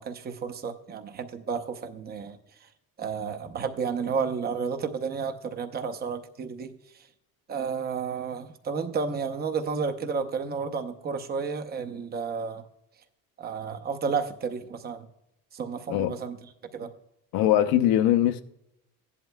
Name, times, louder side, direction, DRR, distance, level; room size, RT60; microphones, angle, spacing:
voice 1, 0.0-2.4 3.0-6.7 7.5-12.6 13.4-15.1 15.5-16.4 16.7-16.9, right 5 dB, 25° right, 0.7 m, -31 dB
voice 2, 15.9-16.2 17.3-18.4, left 12 dB, 70° left, 0.8 m, -22 dB
16.0 x 11.0 x 2.2 m
cardioid pair, 170°, 38 cm